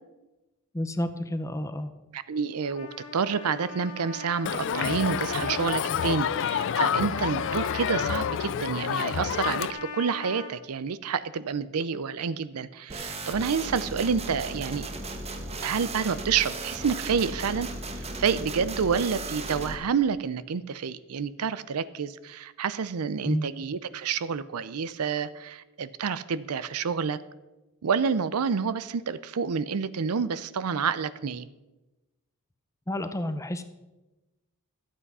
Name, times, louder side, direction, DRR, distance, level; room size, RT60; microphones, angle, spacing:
voice 1, 0.7-1.9 23.3-23.5 32.9-33.6, left 1 dB, 15° left, 10 dB, 0.6 m, -30 dB
voice 2, 2.1-14.9 15.6-17.7 18.0-27.2 27.8-31.5, right 6 dB, 80° right, 16 dB, 0.5 m, -28 dB
Trumpet, 2.5-10.5, left 3 dB, 85° left, 1.4 m, -41 dB
Crowd, 4.5-9.7, left 8 dB, 60° left, 0.4 m, -28 dB
sound 1, 12.9-19.7, right 2 dB, 30° right, 1.1 m, -36 dB
12.5 x 8.4 x 5.5 m, 1.1 s
head